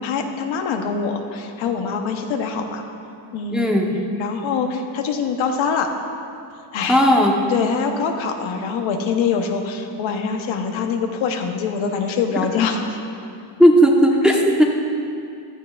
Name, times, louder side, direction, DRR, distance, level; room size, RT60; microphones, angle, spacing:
voice 1, 0.0-2.8 3.3-3.7 4.2-5.9 6.7-7.0 7.5-13.0 14.3-14.4, left 6 dB, 75° left, 4 dB, 1.1 m, -24 dB
voice 2, 3.5-3.9 6.9-7.3 13.6-14.6, equal, ahead, -1 dB, 1.1 m, -15 dB
15.0 x 12.5 x 2.5 m, 2.5 s
cardioid pair, 125°, 47 cm